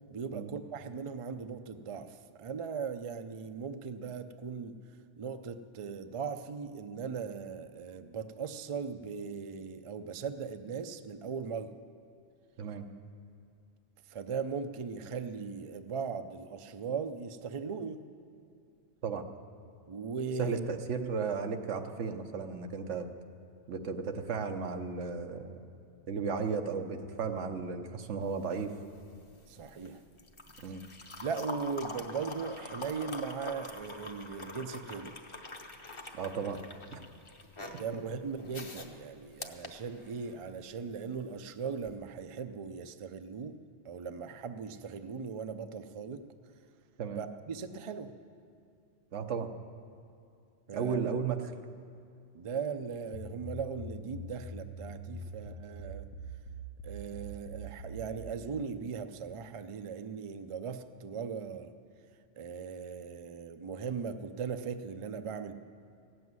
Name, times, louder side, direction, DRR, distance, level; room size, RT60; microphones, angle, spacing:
voice 1, 0.1-4.8 5.2-11.7 14.1-18.0 19.9-20.6 29.5-30.0 31.2-35.1 37.6-43.6 43.8-46.3 47.1-48.1 50.7-51.0 52.3-56.1 56.8-61.7 62.4-65.5, right 5 dB, 45° right, 9 dB, 0.4 m, -38 dB
voice 2, 20.4-23.1 23.7-25.6 26.1-28.8 30.6-30.8 36.1-36.6 36.9-37.0 47.0-47.2 49.1-49.5 50.7-51.5, right 5 dB, 85° right, 6 dB, 1.2 m, -34 dB
sound 1, 28.2-40.5 41.8-41.9, left 2 dB, 30° left, 0.8 m, -45 dB
sound 2, 53.1-58.4, right 1 dB, 90° left, 1.1 m, -44 dB
15.5 x 7.9 x 9.4 m, 2.4 s
omnidirectional pair, 1.2 m